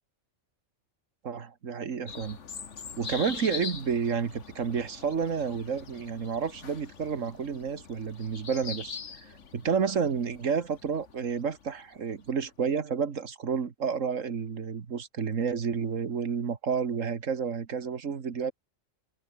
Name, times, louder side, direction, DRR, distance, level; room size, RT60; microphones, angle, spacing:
voice 1, 1.2-2.4 3.0-18.5, right 6 dB, 80° right, 1.9 m, -30 dB
sound 1, 2.1-12.3, left 6 dB, 65° left, 1.8 m, -43 dB
omnidirectional pair, 1.3 m